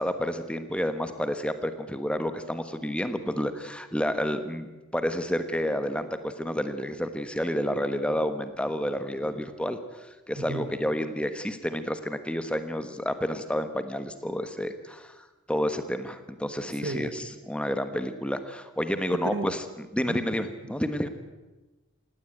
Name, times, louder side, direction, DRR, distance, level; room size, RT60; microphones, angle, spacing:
voice 1, 0.0-19.6 19.9-21.1, equal, 5° left, 9 dB, 1.3 m, -30 dB
voice 2, 10.4-10.7 16.8-17.3 19.3-19.5 20.0-20.2, right 2 dB, 60° right, 9 dB, 1.5 m, -34 dB
18.0 x 17.5 x 8.8 m, 1.2 s
head